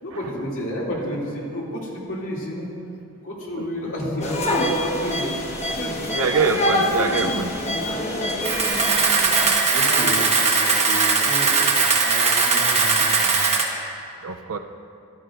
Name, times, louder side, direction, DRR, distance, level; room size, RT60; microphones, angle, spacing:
voice 1, 0.0-2.7 3.2-5.3 5.7-6.5 6.8-6.9 7.4-8.4 9.7-13.8, equal, 60° left, -5 dB, 2.6 m, -31 dB
voice 2, 3.6-3.9 6.1-7.6 14.2-14.6, right 5 dB, 65° right, 7 dB, 0.6 m, -24 dB
sound 1, 4.2-9.6, left 1 dB, 30° left, 1.2 m, -26 dB
Camera, 8.4-13.6, right 4 dB, 30° right, 1.2 m, -19 dB
16.0 x 12.5 x 2.5 m, 2.5 s
head